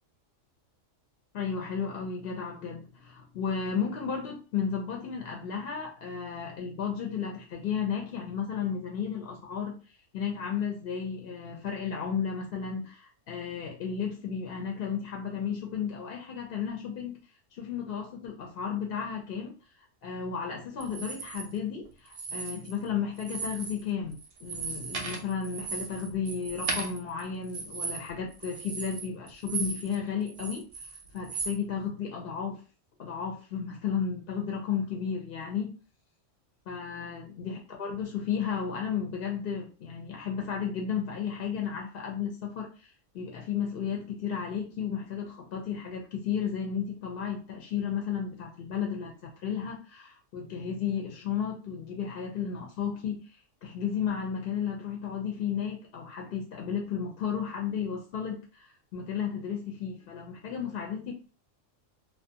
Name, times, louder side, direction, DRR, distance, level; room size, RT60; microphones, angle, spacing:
voice 1, 1.3-9.7 10.1-17.2 17.6-19.5 20.0-30.7 31.1-32.6 33.0-35.7 36.7-42.9 43.1-53.2 53.6-61.1, left 7 dB, 60° left, 1 dB, 0.6 m, -33 dB
sound 1, 20.8-21.4 22.1-22.9 23.2-23.8 24.1-30.0 30.3-31.6, right 4 dB, 70° right, 0.3 m, -36 dB
2.4 x 2.1 x 2.7 m, 0.34 s
omnidirectional pair, 1.3 m